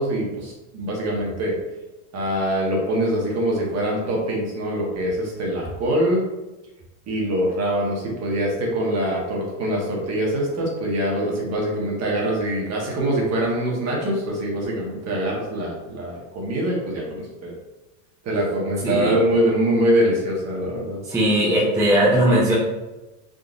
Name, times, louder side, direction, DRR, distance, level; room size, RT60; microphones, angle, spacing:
voice 1, 0.0-1.5 2.1-6.2 7.1-17.5 18.2-21.0, right 1 dB, 35° right, -2 dB, 1.1 m, -24 dB
voice 2, 18.8-19.1 21.1-22.5, right 1 dB, 5° right, -7 dB, 0.6 m, -18 dB
3.8 x 2.5 x 2.4 m, 1.1 s
supercardioid pair, 120°, 43 cm